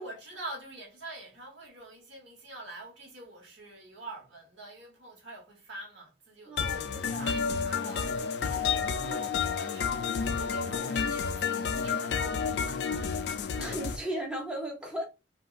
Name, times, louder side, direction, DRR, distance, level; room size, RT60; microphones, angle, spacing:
voice 1, 0.0-8.1 8.5-13.3 13.7-13.8, right 2 dB, 80° right, 1.1 m, -46 dB
voice 2, 6.5-7.3 9.0-9.3 13.6-15.0, right 1 dB, 5° right, 0.6 m, -36 dB
sound 1, 6.6-14.0, left 6 dB, 60° left, 0.3 m, -30 dB
3.4 x 2.2 x 2.4 m
head